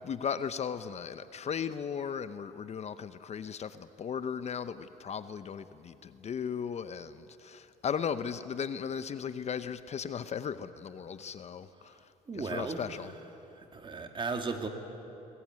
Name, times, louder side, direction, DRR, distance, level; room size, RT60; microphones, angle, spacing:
voice 1, 0.0-12.0 12.3-13.1, left 7 dB, 40° left, 12 dB, 0.8 m, -36 dB
voice 2, 12.3-13.1 13.5-14.7, right 4 dB, 30° right, 5 dB, 2.6 m, -36 dB
23.0 x 20.0 x 9.6 m, 2.9 s
cardioid pair, 110°, 17 cm